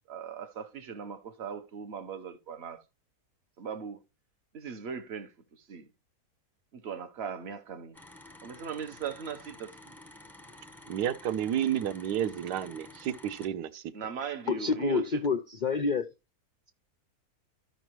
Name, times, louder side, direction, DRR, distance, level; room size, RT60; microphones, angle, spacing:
voice 1, 0.1-2.8 3.6-4.0 4.5-5.3 5.7-5.9 6.7-8.0 8.4-9.9 13.9-15.2, right 7 dB, 50° right, 1.0 m, -39 dB
sound 1, 7.9-13.5, left 1 dB, ahead, 0.6 m, -51 dB
voice 2, 10.9-13.9, right 10 dB, 85° right, 1.2 m, -31 dB
voice 3, 14.5-16.1, left 4 dB, 85° left, 0.4 m, -28 dB
13.5 x 5.4 x 3.0 m
omnidirectional pair, 1.7 m